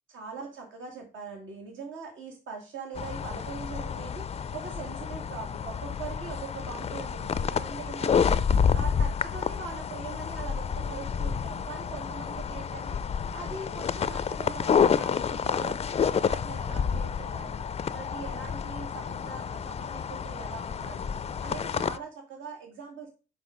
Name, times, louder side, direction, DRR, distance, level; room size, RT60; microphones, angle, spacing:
voice 1, 0.1-4.3 4.5-8.4 8.7-17.6 17.9-21.1 21.4-23.1, right 5 dB, 75° right, 1 dB, 2.2 m, -42 dB
sound 1, 3.0-22.0, left 7 dB, 30° left, 0.4 m, -29 dB
6.1 x 5.1 x 5.1 m, 0.33 s
cardioid pair, 90°, 20 cm